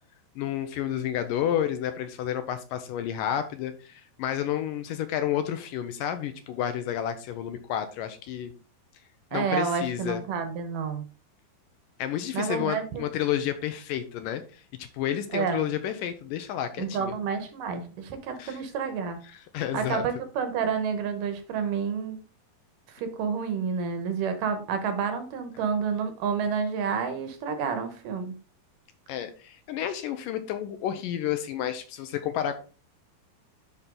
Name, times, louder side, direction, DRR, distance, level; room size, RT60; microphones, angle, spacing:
voice 1, 0.4-8.5 9.3-10.2 12.0-17.1 18.4-18.6 19.3-20.0 29.1-32.6, left 10 dB, 80° left, 9 dB, 2.2 m, -30 dB
voice 2, 9.3-11.0 12.3-13.0 15.3-15.7 16.8-19.2 19.7-22.2 22.9-28.3, right 6 dB, 70° right, 7 dB, 2.5 m, -29 dB
10.5 x 4.4 x 3.8 m, 0.36 s
omnidirectional pair, 4.2 m